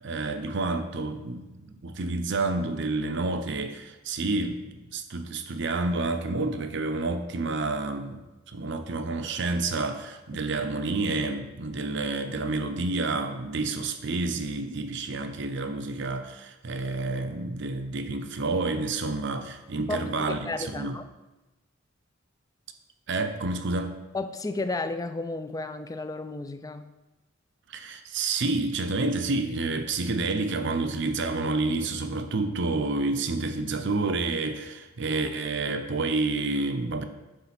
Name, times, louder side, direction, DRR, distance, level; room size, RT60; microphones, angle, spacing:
voice 1, 0.0-8.2 8.5-21.0 23.1-24.0 27.7-37.0, right 3 dB, 65° right, 8 dB, 0.7 m, -29 dB
voice 2, 19.9-21.1 24.1-26.9, left 2 dB, 20° left, 10 dB, 0.4 m, -33 dB
9.9 x 3.3 x 5.9 m, 1.1 s
head